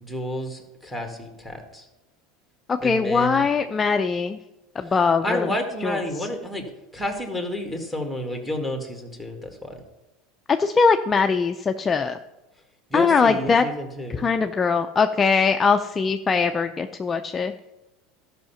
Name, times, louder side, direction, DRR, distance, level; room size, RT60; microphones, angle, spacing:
voice 1, 0.0-1.8 2.8-3.5 5.2-6.7 6.9-9.7 12.9-14.3, left 1 dB, ahead, 4 dB, 1.9 m, -30 dB
voice 2, 2.7-4.4 4.8-5.5 5.8-6.3 10.6-12.2 12.9-13.6 14.1-17.5, left 5 dB, 25° left, 7 dB, 0.4 m, -21 dB
12.5 x 5.7 x 5.7 m, 1.0 s
supercardioid pair, 115°, 0 cm